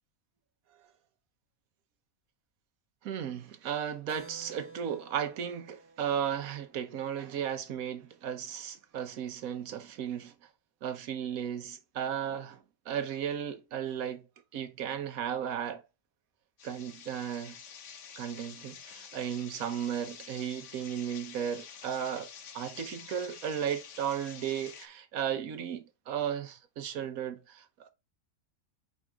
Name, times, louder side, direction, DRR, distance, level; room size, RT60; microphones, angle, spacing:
voice 1, 3.0-10.3 10.8-14.2 14.5-15.8 16.6-17.6 18.2-22.3 22.5-27.9, right 9 dB, 85° right, 1.3 m, -35 dB
Keyboard (musical), 4.1-8.2, right 4 dB, 15° right, 0.5 m, -53 dB
sound 1, 16.6-24.9, left 7 dB, 65° left, 1.1 m, -49 dB
4.9 x 4.2 x 4.5 m
omnidirectional pair, 1.4 m